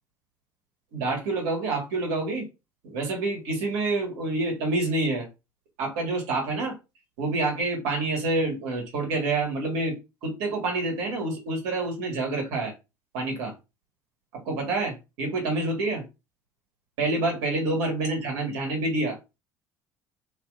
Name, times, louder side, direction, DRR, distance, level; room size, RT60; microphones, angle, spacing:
voice 1, 0.9-2.5 2.8-5.3 5.8-6.8 7.2-10.0 10.2-12.7 13.1-13.5 14.3-16.0 17.0-19.2, right 2 dB, 70° right, 1.5 m, -27 dB
3.0 x 2.9 x 2.4 m
figure-of-eight pair, 60°, 11 cm